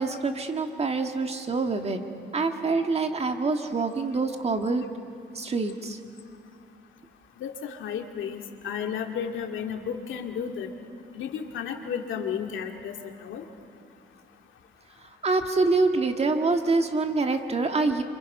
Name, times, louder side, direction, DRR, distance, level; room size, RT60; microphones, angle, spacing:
voice 1, 0.0-2.0 2.3-4.8 5.4-6.0 15.2-18.0, right 3 dB, 30° right, 5 dB, 1.8 m, -25 dB
voice 2, 7.4-10.7 11.2-12.9 13.2-13.4, left 7 dB, 75° left, 3 dB, 2.2 m, -33 dB
29.0 x 26.5 x 5.5 m, 2.4 s
cardioid pair, 90°, 20 cm